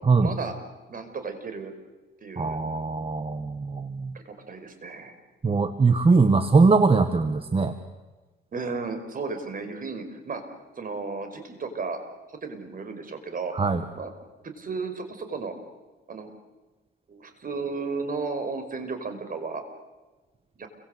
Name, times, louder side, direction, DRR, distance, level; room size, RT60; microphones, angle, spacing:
voice 1, 0.2-0.6 0.9-1.7 2.2-2.6 4.1-5.1 8.5-10.4 10.8-12.0 12.3-13.5 13.9-14.1 14.4-15.6 16.1-16.3 17.1-19.6 20.6-20.7, right 4 dB, 45° right, 8 dB, 5.4 m, -34 dB
voice 2, 2.4-4.1 5.4-7.7 13.5-13.8, right 4 dB, 30° right, 9 dB, 1.8 m, -21 dB
29.0 x 24.5 x 8.2 m, 1.2 s
cardioid pair, 90°, 20 cm